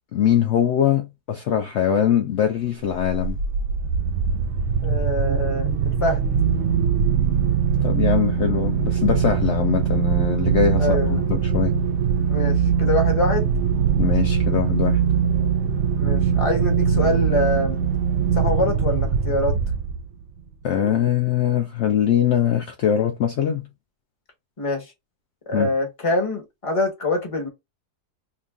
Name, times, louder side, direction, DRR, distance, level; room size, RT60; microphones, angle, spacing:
voice 1, 0.1-3.4 7.8-11.7 14.0-15.0 20.6-23.7 25.5-25.7, left 9 dB, 70° left, 0.6 m, -22 dB
sound 1, 2.9-20.2, right 7 dB, 75° right, 0.6 m, -21 dB
voice 2, 4.8-6.2 10.8-11.2 12.3-13.5 16.0-17.8 18.4-19.6 24.6-24.9 25.5-27.5, left 2 dB, 25° left, 0.9 m, -25 dB
3.0 x 2.5 x 3.5 m
omnidirectional pair, 1.7 m